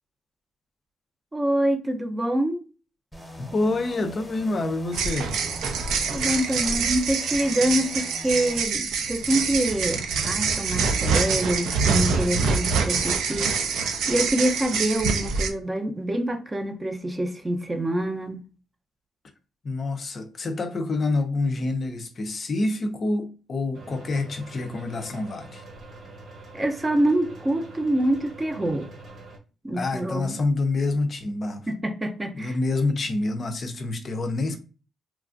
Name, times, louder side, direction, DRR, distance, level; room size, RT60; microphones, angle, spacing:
voice 1, 1.3-2.6 6.1-13.6 14.1-18.4 26.5-28.9 29.6-30.4 31.7-32.6, right 1 dB, 20° right, 0.5 m, -26 dB
sound 1, 3.1-8.6, equal, ahead, 0.9 m, -43 dB
voice 2, 3.4-5.3 19.6-25.6 29.7-31.7 32.3-34.6, left 2 dB, 45° left, 0.5 m, -27 dB
sound 2, 4.9-15.5, right 5 dB, 80° right, 0.5 m, -25 dB
sound 3, 23.7-29.4, right 2 dB, 55° right, 0.9 m, -44 dB
3.0 x 2.4 x 2.4 m
cardioid pair, 90°, 0 cm